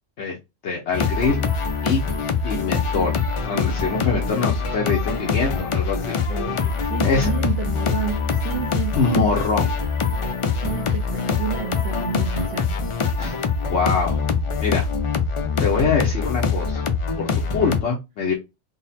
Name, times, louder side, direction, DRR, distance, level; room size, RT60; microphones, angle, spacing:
voice 1, 0.6-1.4 1.8-2.0 2.4-6.1 7.0-7.3 8.9-9.7 13.2-13.3 13.7-14.2 14.6-14.9 15.6-16.8 17.2-18.3, left 4 dB, 70° left, 1.1 m, -24 dB
sound 1, 0.9-17.8, left 5 dB, 55° left, 0.3 m, -24 dB
voice 2, 6.3-9.3 10.6-12.8 15.5-15.6, right 7 dB, 65° right, 0.8 m, -30 dB
3.8 x 2.1 x 4.0 m
omnidirectional pair, 1.2 m